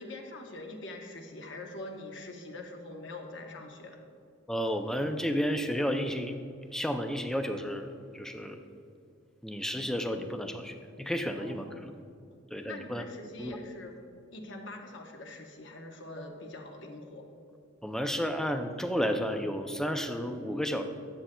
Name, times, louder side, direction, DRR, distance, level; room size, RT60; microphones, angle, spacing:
voice 1, 0.0-4.0 11.4-12.0 12.7-13.9 14.3-17.3, left 2 dB, 60° left, 3 dB, 0.9 m, -44 dB
voice 2, 4.5-6.3 6.7-8.6 9.4-11.9 12.5-13.0 13.4-13.6 17.8-20.8, equal, 5° left, 6 dB, 0.4 m, -32 dB
11.0 x 7.5 x 2.3 m, 2.4 s
head